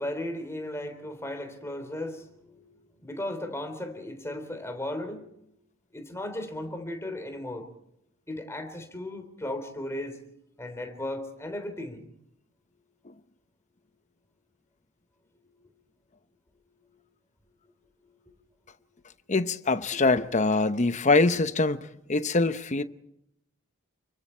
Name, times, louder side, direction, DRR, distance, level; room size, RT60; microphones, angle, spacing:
voice 1, 0.0-5.4 5.9-7.7 8.3-10.2 10.6-12.1, left 1 dB, 15° left, 3.4 m, -36 dB
voice 2, 19.3-22.8, left 3 dB, 35° left, 0.9 m, -24 dB
29.5 x 23.5 x 4.5 m
head